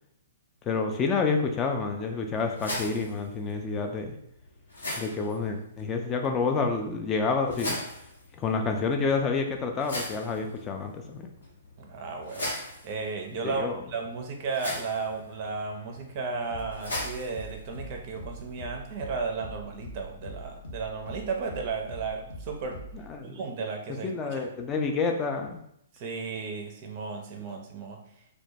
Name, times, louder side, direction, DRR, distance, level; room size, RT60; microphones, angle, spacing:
voice 1, 0.7-4.1 5.0-7.8 8.4-11.3 13.4-13.8 22.9-23.4 24.0-25.6, left 4 dB, 25° left, 3 dB, 0.3 m, -28 dB
sound 1, 1.6-18.6, left 1 dB, 90° left, 0.9 m, -41 dB
voice 2, 11.8-22.8 23.2-24.5 25.9-28.0, right 4 dB, 40° right, 3 dB, 0.4 m, -34 dB
sound 2, 15.1-23.1, equal, 65° left, 0.6 m, -44 dB
2.1 x 2.1 x 2.7 m, 0.75 s
hypercardioid pair, 125°, 0 cm